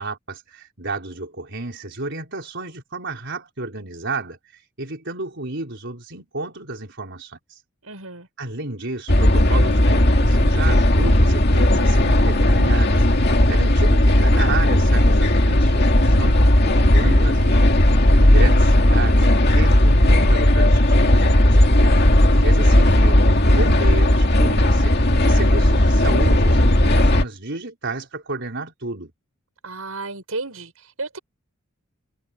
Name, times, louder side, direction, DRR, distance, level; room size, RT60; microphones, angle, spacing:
voice 1, 0.0-7.6 8.4-17.6 18.2-19.3 19.5-21.9 22.2-29.1, right 2 dB, 55° right, 4.8 m, -32 dB
voice 2, 7.8-8.3 29.6-30.7 31.0-31.2, right 3 dB, 85° right, 7.1 m, -32 dB
sound 1, 9.1-27.2, left 1 dB, 50° left, 2.4 m, -15 dB
head